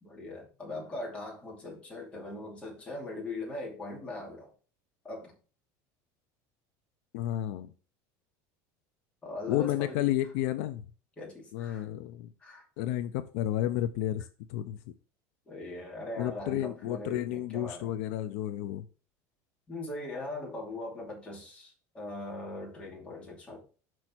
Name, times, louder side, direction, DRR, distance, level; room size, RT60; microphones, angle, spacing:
voice 1, 0.0-4.5 5.0-5.3 9.2-10.1 11.2-11.8 12.4-12.6 15.5-17.9 19.7-23.6, left 2 dB, 15° left, 2.6 m, -40 dB
voice 2, 7.1-7.7 9.5-10.9 11.5-12.3 12.8-14.8 16.2-18.9, left 13 dB, 65° left, 0.6 m, -31 dB
6.1 x 5.4 x 4.5 m
cardioid pair, 180°, 9 cm